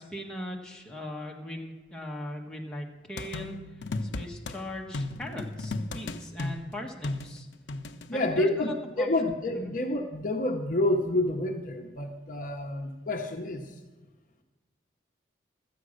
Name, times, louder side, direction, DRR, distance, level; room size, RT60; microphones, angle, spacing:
voice 1, 0.0-7.5 8.1-9.1 9.5-9.7, left 1 dB, 5° left, -1 dB, 1.3 m, -39 dB
sound 1, 3.2-4.6 4.9-8.1, left 2 dB, 85° left, 0.6 m, -35 dB
voice 2, 8.1-13.6, left 1 dB, 45° left, 4 dB, 0.9 m, -28 dB
13.0 x 8.6 x 6.4 m, 1.2 s
head